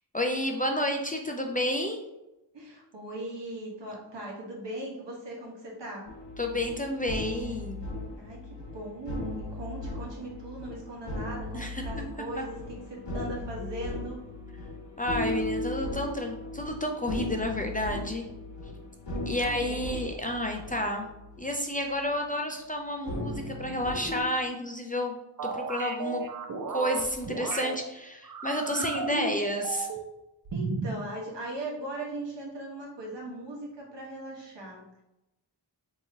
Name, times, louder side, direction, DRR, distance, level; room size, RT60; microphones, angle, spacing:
voice 1, 0.1-2.0 6.4-7.9 11.5-11.8 12.4-12.5 15.0-18.3 19.3-21.1 21.4-25.1 25.4-26.2 26.7-29.9, left 1 dB, 20° left, 2 dB, 0.3 m, -30 dB
voice 2, 2.5-6.1 8.2-14.2 19.4-20.0 30.5-35.0, right 1 dB, 80° right, -2 dB, 1.1 m, -39 dB
sound 1, 6.1-21.6 21.9-22.2 23.1-24.2, left 1 dB, 80° left, 1.1 m, -37 dB
sound 2, 25.4-27.7 28.2-30.1 30.4-31.0, right 4 dB, 50° right, 0.5 m, -34 dB
3.6 x 2.9 x 2.6 m, 0.93 s
wide cardioid pair, 65°, 43 cm